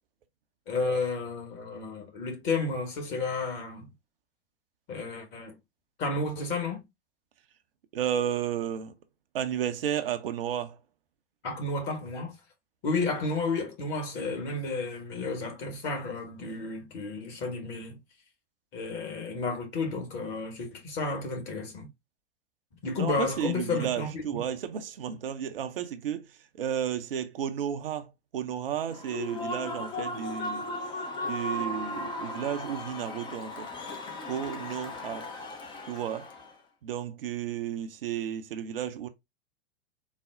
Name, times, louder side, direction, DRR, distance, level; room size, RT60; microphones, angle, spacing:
voice 1, 0.7-3.9 4.9-5.6 6.0-6.8 11.4-12.4 12.8-18.0 18.7-21.9 22.8-24.5, left 3 dB, 35° left, 1.4 m, -32 dB
voice 2, 7.9-8.9 9.3-10.8 23.0-26.3 26.5-30.7 31.2-33.7 34.3-35.2 35.9-36.3 36.8-39.1, right 9 dB, 60° right, 0.6 m, -32 dB
Human voice / Cheering / Applause, 28.9-36.5, left 1 dB, 15° left, 0.5 m, -36 dB
4.0 x 2.1 x 3.6 m
figure-of-eight pair, 95°, 32 cm